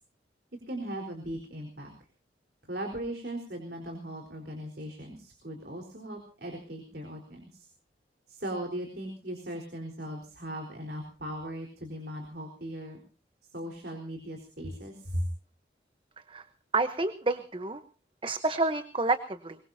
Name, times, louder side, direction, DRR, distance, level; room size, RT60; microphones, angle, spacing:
voice 1, 0.7-1.9 2.7-7.7 8.3-13.0 13.4-15.3, right 1 dB, 65° right, 2 dB, 4.2 m, -38 dB
voice 2, 16.7-17.8 18.2-19.6, right 3 dB, 30° right, 10 dB, 0.9 m, -29 dB
23.0 x 22.0 x 2.8 m, 0.38 s
head